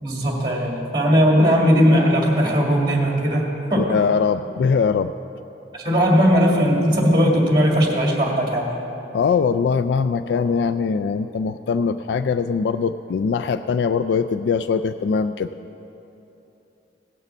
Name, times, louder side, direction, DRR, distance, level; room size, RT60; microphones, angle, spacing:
voice 1, 0.0-4.0 5.7-8.7, equal, 25° right, 0 dB, 2.0 m, -18 dB
voice 2, 3.7-5.1 9.1-15.5, left 5 dB, 75° left, 11 dB, 0.3 m, -21 dB
17.0 x 6.6 x 7.1 m, 2.9 s
head